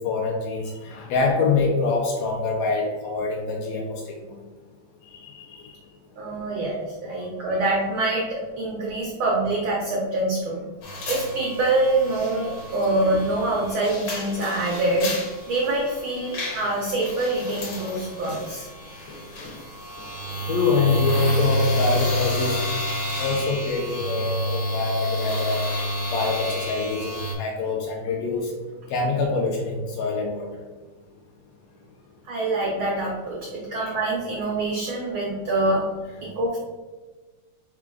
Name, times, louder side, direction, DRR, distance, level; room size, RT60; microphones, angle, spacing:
voice 1, 0.0-4.4 5.1-5.8 7.4-7.5 20.5-22.6 23.2-25.6 26.1-28.5 28.9-30.5, left 4 dB, 80° left, 0 dB, 1.6 m, -25 dB
voice 2, 6.2-10.6 11.1-15.2 15.5-18.7 32.2-35.9 36.3-36.6, right 2 dB, 85° right, -3 dB, 1.1 m, -25 dB
sound 1, 10.8-27.3, equal, 60° left, 1.4 m, -29 dB
4.8 x 2.3 x 4.6 m, 1.3 s
omnidirectional pair, 3.3 m